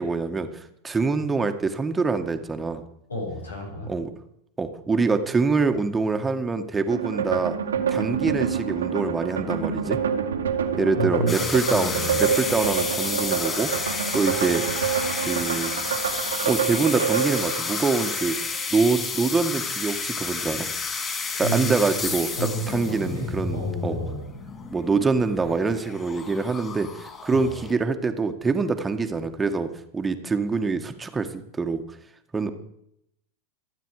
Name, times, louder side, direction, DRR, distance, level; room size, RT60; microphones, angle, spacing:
voice 1, 0.0-2.8 3.9-4.1 4.6-7.6 7.9-10.0 10.7-11.9 12.2-13.7 14.1-14.6 15.2-15.7 16.4-18.4 18.7-20.7 21.4-22.3 22.7-24.0 24.7-29.7 29.9-31.8 32.3-32.5, right 4 dB, 15° right, 7 dB, 1.7 m, -25 dB
voice 2, 3.1-3.9 10.9-12.4 21.3-24.3 27.3-27.5, right 1 dB, 90° left, 0 dB, 6.0 m, -31 dB
sound 1, 6.9-18.6, right 7 dB, 85° right, 2.0 m, -27 dB
sound 2, 11.3-27.7, left 4 dB, 25° left, 4.5 m, -31 dB
27.0 x 9.3 x 4.9 m, 0.77 s
hypercardioid pair, 95°, 0 cm